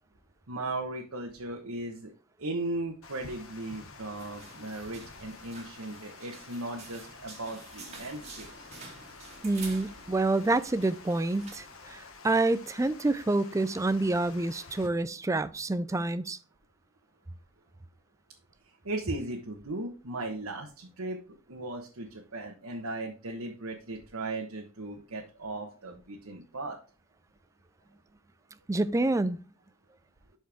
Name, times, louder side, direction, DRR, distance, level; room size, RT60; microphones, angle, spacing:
voice 1, 0.5-2.1 2.4-8.7 18.6-21.2 21.5-26.8, right 2 dB, 90° right, 1.2 m, -37 dB
Water, 3.0-14.9, left 4 dB, 75° left, 1.3 m, -50 dB
sound 1, 4.2-11.8, right 3 dB, 30° right, 1.9 m, -49 dB
voice 2, 9.4-16.4 28.7-29.4, right 2 dB, 15° right, 0.3 m, -28 dB
12.0 x 4.5 x 3.4 m
head